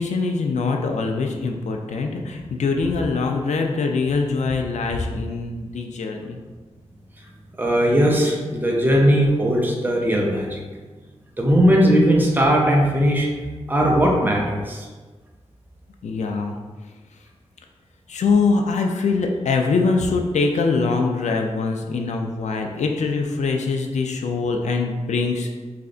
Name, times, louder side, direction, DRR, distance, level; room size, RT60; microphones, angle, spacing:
voice 1, 0.0-6.4 16.0-16.5 18.1-25.6, left 4 dB, 80° left, 3 dB, 0.4 m, -23 dB
voice 2, 7.6-10.6 11.4-13.3 13.7-14.9, equal, 15° right, -1 dB, 0.6 m, -18 dB
3.3 x 2.4 x 3.7 m, 1.3 s
wide cardioid pair, 100°, 12 cm